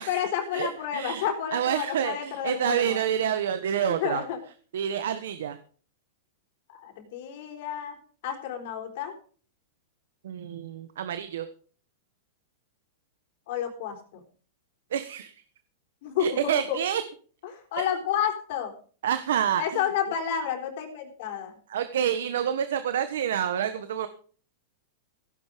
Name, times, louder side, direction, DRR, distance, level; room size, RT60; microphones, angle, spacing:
voice 1, 0.0-3.0 3.9-4.4 6.7-8.0 8.2-9.1 13.5-14.2 16.0-16.8 17.4-18.7 19.6-21.5, left 8 dB, 55° left, 4 dB, 4.0 m, -30 dB
voice 2, 0.5-1.2 1.5-4.2 4.7-5.6 10.2-11.5 14.9-15.3 16.2-17.0 19.0-19.6 21.7-24.1, right 9 dB, 80° right, 10 dB, 1.3 m, -28 dB
16.0 x 10.5 x 5.2 m, 0.43 s
supercardioid pair, 165°, 0 cm